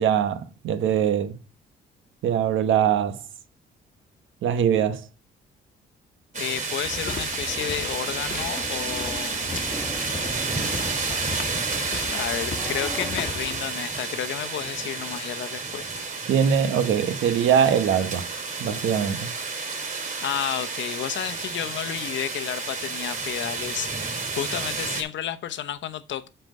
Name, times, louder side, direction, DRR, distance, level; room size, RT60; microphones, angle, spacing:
voice 1, 0.0-1.4 2.2-3.2 4.4-5.1 16.3-18.3 18.6-19.3, right 8 dB, 75° right, 1.0 m, -22 dB
voice 2, 6.3-9.4 12.1-16.1 20.2-26.3, left 10 dB, 70° left, 0.9 m, -31 dB
sound 1, 6.3-25.0, right 4 dB, 40° right, 3.2 m, -31 dB
sound 2, 6.8-13.7, left 4 dB, 40° left, 1.6 m, -37 dB
sound 3, 7.5-13.1, equal, ahead, 1.4 m, -40 dB
7.9 x 4.5 x 5.3 m
cardioid pair, 90°, 20 cm